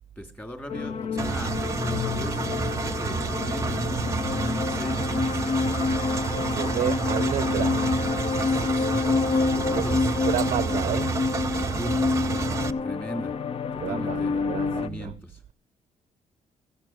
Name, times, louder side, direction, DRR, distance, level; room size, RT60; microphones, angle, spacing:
voice 1, 0.2-4.2 4.4-5.7 8.3-10.1 11.7-12.1 12.8-13.3 13.7-14.4 14.8-15.4, equal, 15° left, 2.6 m, -39 dB
sound 1, 0.7-14.9, left 4 dB, 45° left, 0.6 m, -28 dB
Engine, 1.2-12.7, right 4 dB, 25° right, 0.8 m, -29 dB
voice 2, 6.4-8.0 9.7-9.8 10.2-11.2 13.8-15.1, right 11 dB, 65° right, 0.5 m, -30 dB
15.0 x 7.3 x 7.7 m
cardioid pair, 135°, 13 cm